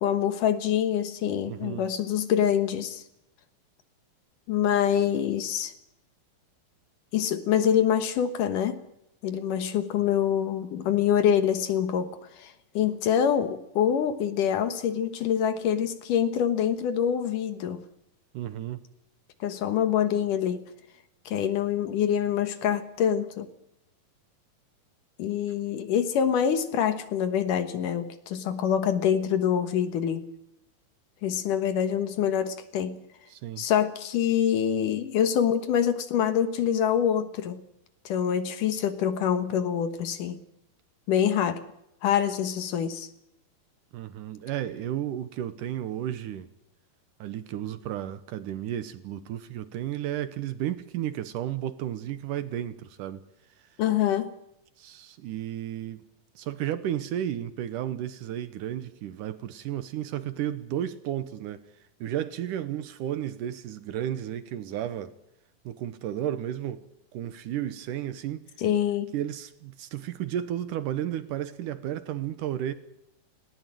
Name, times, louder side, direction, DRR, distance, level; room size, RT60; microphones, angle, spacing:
voice 1, 0.0-3.0 4.5-5.7 7.1-8.8 9.2-12.1 12.4-17.8 19.4-20.6 21.3-23.5 25.2-30.2 31.2-33.0 33.6-37.6 38.1-40.4 41.1-41.6 42.0-43.1 53.8-54.3 68.6-69.1, left 9 dB, 65° left, 2.8 m, -25 dB
voice 2, 1.5-1.9 18.3-18.8 33.3-33.7 43.9-46.5 47.2-53.2 54.8-56.0 56.4-61.6 62.0-65.1 65.7-66.8 67.1-68.4 69.1-72.7, right 11 dB, 70° right, 2.3 m, -33 dB
20.0 x 18.5 x 7.7 m
omnidirectional pair, 4.2 m